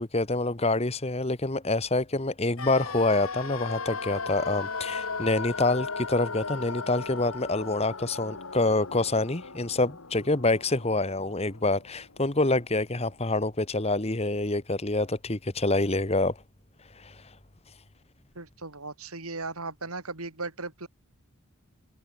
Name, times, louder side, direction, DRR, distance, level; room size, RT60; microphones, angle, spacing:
voice 1, 0.0-16.4 17.0-17.1, left 2 dB, 30° left, 1.3 m, -26 dB
sound 1, 2.6-12.5 12.8-12.9, left 4 dB, 75° left, 2.2 m, -37 dB
voice 2, 18.3-20.9, right 3 dB, 80° right, 4.4 m, -37 dB
head